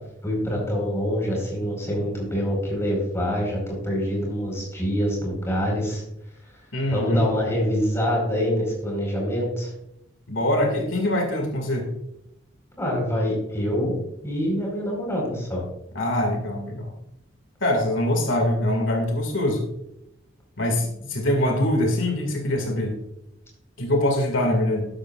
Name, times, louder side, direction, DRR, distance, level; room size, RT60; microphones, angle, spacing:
voice 1, 0.2-6.0 6.9-9.7 12.8-14.0 14.2-15.6, equal, 15° left, -2 dB, 4.6 m, -25 dB
voice 2, 6.7-7.3 10.3-11.9 16.0-16.9 17.6-19.7 20.6-23.0 23.8-24.9, left 1 dB, 80° left, 3 dB, 2.2 m, -23 dB
12.5 x 11.5 x 2.5 m, 0.82 s
head